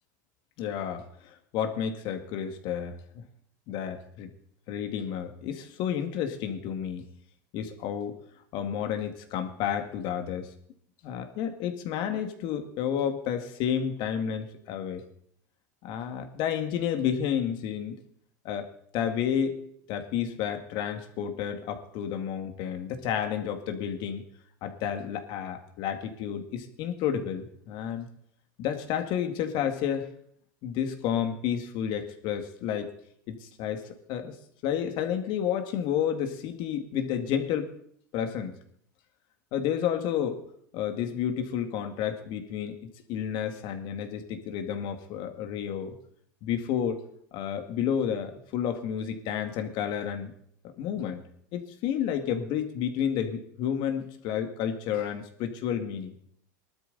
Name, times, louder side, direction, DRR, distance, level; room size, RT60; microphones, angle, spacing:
voice 1, 0.6-3.2 3.7-4.3 4.7-7.0 7.5-8.2 8.5-10.5 11.0-15.0 15.8-18.0 18.4-18.7 18.9-19.6 19.9-24.2 24.6-28.1 28.6-30.1 30.6-32.9 33.3-34.3 34.6-37.7 38.1-38.6 39.5-40.4 40.7-46.0 46.4-47.0 47.3-50.3 50.8-51.2 51.5-56.1, left 9 dB, 55° left, 7 dB, 2.2 m, -31 dB
19.5 x 12.5 x 4.1 m, 0.66 s
supercardioid pair, 115°, 9 cm